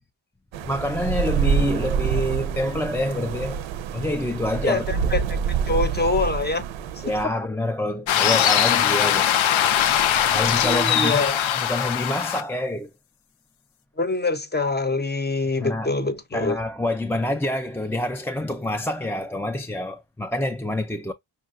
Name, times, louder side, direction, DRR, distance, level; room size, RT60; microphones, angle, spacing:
sound 1, 0.5-7.2, right 6 dB, 75° right, 0.6 m, -26 dB
voice 1, 0.7-3.6 3.9-4.9 5.1-5.2 7.0-12.9 15.6-15.9 16.3-21.1, left 1 dB, 5° left, 0.4 m, -27 dB
voice 2, 4.6-5.4 5.7-6.7 10.6-11.4 14.0-16.6, left 3 dB, 20° left, 0.7 m, -25 dB
sound 2, 8.1-12.4, left 10 dB, 75° left, 0.6 m, -21 dB
5.5 x 2.2 x 2.4 m
cardioid pair, 75°, 47 cm